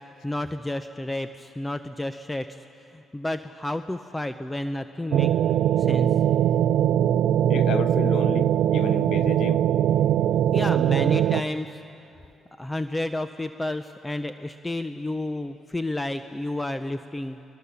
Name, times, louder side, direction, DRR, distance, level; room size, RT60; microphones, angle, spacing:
voice 1, 0.2-2.6 2.9-5.3 5.8-6.1 10.5-11.8 12.6-17.4, left 1 dB, 15° left, 0.7 m, -31 dB
sound 1, 5.1-11.4, right 10 dB, 80° right, 0.5 m, -21 dB
voice 2, 7.5-9.6, left 9 dB, 70° left, 0.4 m, -32 dB
25.5 x 20.5 x 7.0 m
cardioid pair, 90°, 0 cm